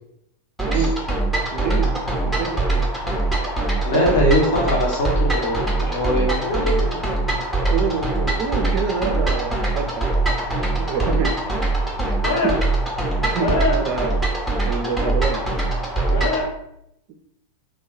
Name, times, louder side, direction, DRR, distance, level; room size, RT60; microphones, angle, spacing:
sound 1, 0.6-16.5, right 2 dB, 5° left, 0.7 m, -22 dB
voice 1, 1.5-2.9 3.9-4.2 7.7-10.1 10.8-11.4 12.0-12.2 12.4-12.6 13.2-14.1 14.6-15.4, right 5 dB, 40° right, 5 dB, 0.4 m, -26 dB
voice 2, 3.8-7.0 12.2-12.5 13.4-13.8 16.1-16.4, left 1 dB, 55° left, -1 dB, 0.9 m, -22 dB
2.4 x 2.2 x 3.6 m, 0.78 s
figure-of-eight pair, 90°, 0 cm